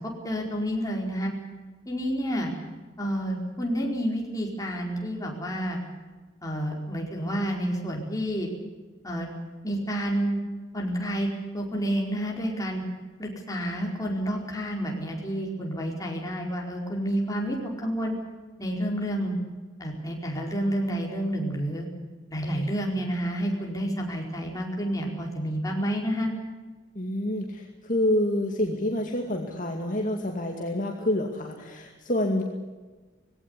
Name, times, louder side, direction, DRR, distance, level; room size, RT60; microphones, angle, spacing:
voice 1, 0.2-1.3 1.9-2.5 3.0-5.8 6.4-8.5 9.0-9.3 9.6-10.4 10.7-11.3 11.5-12.8 13.2-18.1 18.6-19.4 19.8-21.9 22.3-26.3, equal, 20° left, -1 dB, 4.8 m, -29 dB
voice 2, 27.0-32.4, left 1 dB, 45° left, 1 dB, 2.3 m, -27 dB
20.5 x 17.0 x 9.8 m, 1.3 s
head